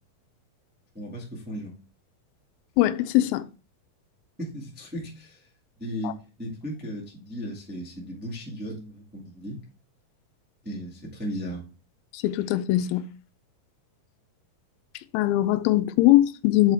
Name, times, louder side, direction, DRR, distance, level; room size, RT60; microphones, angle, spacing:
voice 1, 0.9-1.7 4.4-5.4 5.8-9.6 10.6-11.6, equal, 15° right, 0.4 m, -36 dB
voice 2, 2.8-3.4 12.2-13.0 15.1-16.7, left 15 dB, 85° left, 2.4 m, -21 dB
7.3 x 5.1 x 3.5 m
omnidirectional pair, 4.3 m